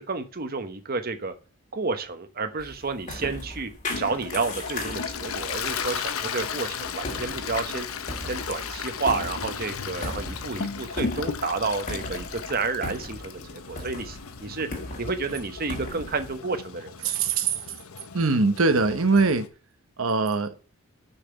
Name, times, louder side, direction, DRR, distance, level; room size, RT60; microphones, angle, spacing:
voice 1, 0.0-1.3 1.7-3.7 4.0-7.9 8.3-14.7 15.0-16.9, right 4 dB, 45° right, 1.0 m, -30 dB
sound 1, 2.6-16.4, left 1 dB, 35° left, 3.0 m, -38 dB
Toilet flush, 3.9-19.5, left 6 dB, 85° left, 0.8 m, -35 dB
voice 2, 17.0-17.6 18.1-19.5 20.0-20.6, right 3 dB, 75° right, 1.0 m, -22 dB
6.8 x 5.8 x 6.8 m
head